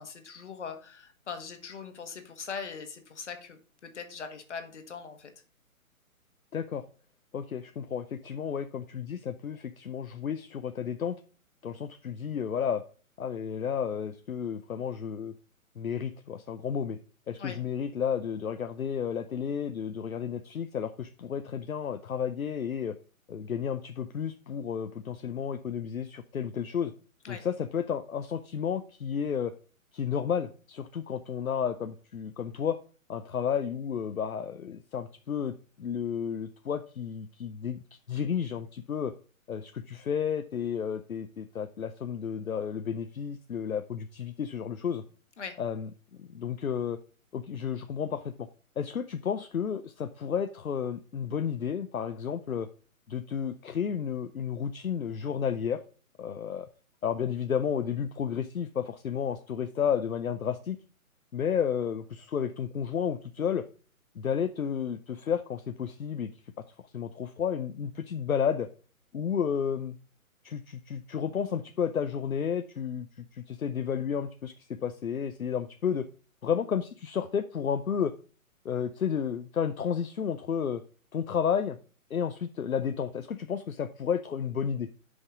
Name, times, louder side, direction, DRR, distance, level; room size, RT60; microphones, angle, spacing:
voice 1, 0.0-5.3 17.4-17.6 27.2-27.4 45.4-45.6, left 6 dB, 55° left, 7 dB, 1.7 m, -41 dB
voice 2, 6.5-6.8 7.3-11.2 11.6-12.8 13.2-15.3 15.8-17.0 17.3-23.0 23.3-26.9 27.3-29.5 29.9-32.8 33.1-37.8 38.1-39.1 39.5-45.0 45.6-45.9 46.2-47.0 47.3-48.5 48.8-52.7 53.1-55.8 56.2-56.7 57.0-60.8 61.3-63.6 64.2-66.3 66.9-68.7 69.1-70.0 70.4-76.1 76.4-78.1 78.6-80.8 81.1-81.8 82.1-84.9, left 7 dB, 75° left, 9 dB, 0.7 m, -32 dB
6.9 x 5.3 x 5.0 m, 0.38 s
figure-of-eight pair, 135°, 42 cm